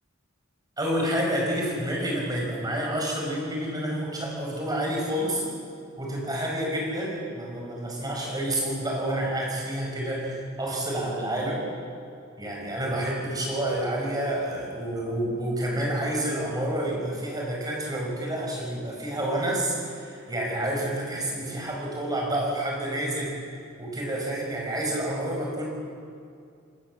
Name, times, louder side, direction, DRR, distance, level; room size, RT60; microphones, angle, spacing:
voice 1, 0.8-5.5 6.0-11.6 12.4-23.4 23.8-25.7, right 1 dB, 20° right, -1 dB, 5.9 m, -29 dB
27.0 x 19.5 x 7.7 m, 2.4 s
head